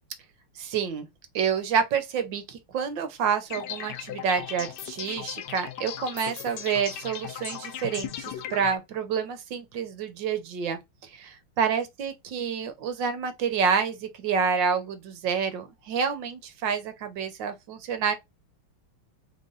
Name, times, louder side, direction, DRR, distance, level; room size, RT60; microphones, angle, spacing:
voice 1, 0.6-1.1 1.3-18.1, right 6 dB, 65° right, 1.4 m, -28 dB
sound 1, 3.5-8.8, left 10 dB, 70° left, 1.0 m, -37 dB
3.7 x 3.6 x 3.8 m
omnidirectional pair, 2.4 m